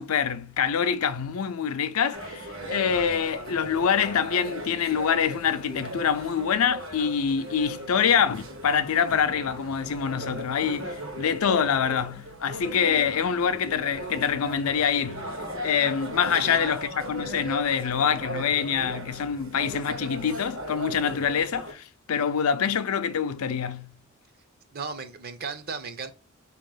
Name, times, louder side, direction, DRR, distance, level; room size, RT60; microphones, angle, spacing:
voice 1, 0.0-15.4 15.6-23.9, left 7 dB, 80° left, 0.5 m, -25 dB
sound 1, 2.1-21.7, right 1 dB, 65° right, 1.2 m, -38 dB
voice 2, 16.3-16.8 24.7-26.1, right 5 dB, 45° right, 0.6 m, -36 dB
4.7 x 2.9 x 3.7 m
head